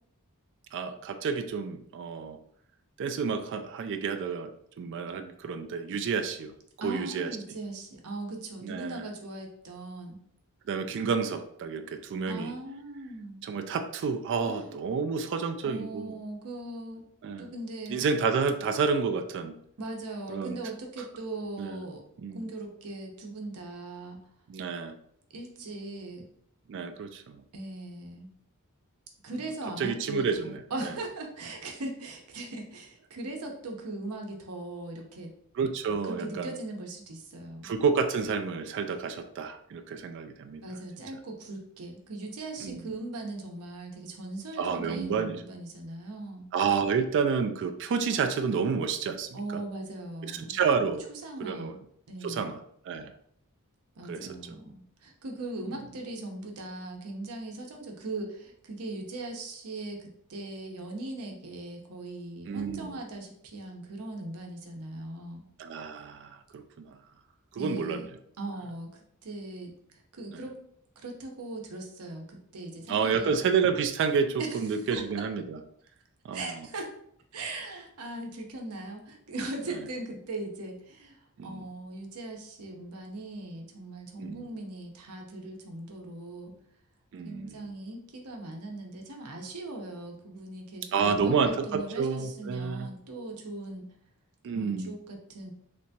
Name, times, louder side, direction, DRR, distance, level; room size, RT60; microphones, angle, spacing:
voice 1, 0.7-2.4 3.0-4.5 4.8-6.5 6.8-7.3 8.6-9.0 10.7-12.5 13.4-16.1 17.2-17.5 17.9-19.5 20.3-20.6 21.6-21.8 22.2-22.4 24.5-24.9 26.7-27.4 29.8-30.6 35.6-36.6 37.6-40.6 42.6-42.9 44.6-45.4 46.5-49.6 50.2-51.1 51.4-51.7 52.2-52.6 52.8-53.1 54.1-54.3 55.7-55.8 62.5-63.0 65.6-67.0 67.5-68.1 70.3-70.4 72.9-75.6 76.2-76.7 81.4-81.7 84.2-84.5 87.1-87.7 90.9-92.9 94.4-94.9, right 5 dB, 55° right, 7 dB, 0.3 m, -30 dB
voice 2, 6.8-10.2 12.3-13.4 14.4-14.7 15.6-17.0 17.4-18.0 19.8-22.0 22.3-24.2 25.3-26.2 27.5-28.3 29.2-35.3 36.0-37.7 40.6-46.5 49.3-50.6 51.1-51.8 52.1-52.5 54.0-65.4 67.6-68.1 68.4-69.7 70.1-70.6 71.0-73.3 74.4-75.0 76.3-76.9 77.3-86.5 87.2-93.8 94.5-95.5, right 2 dB, 85° right, 2 dB, 0.7 m, -39 dB
3.3 x 2.9 x 2.7 m, 0.69 s
head